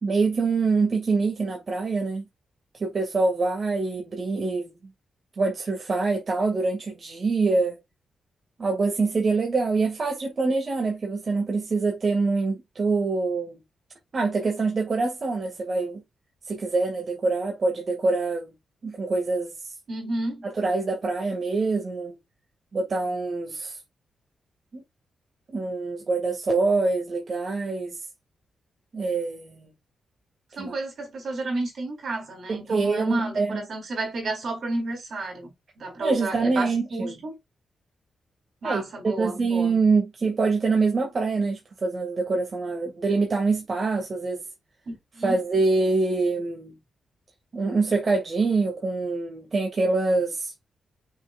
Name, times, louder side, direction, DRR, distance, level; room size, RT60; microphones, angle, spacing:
voice 1, 0.0-2.2 2.8-4.7 5.4-7.8 8.6-13.6 14.1-16.0 16.5-18.5 18.8-19.5 20.4-22.1 22.7-23.8 24.7-24.8 25.5-28.0 28.9-29.7 30.6-30.7 32.5-33.5 36.0-37.2 38.6-44.5 45.2-46.7 47.5-50.5, right 3 dB, 40° right, 2.3 m, -25 dB
voice 2, 19.9-20.5 30.5-37.4 38.6-39.7 44.9-45.4, right 2 dB, 60° right, 4.1 m, -31 dB
6.3 x 6.2 x 2.5 m
cardioid pair, 100°, 0 cm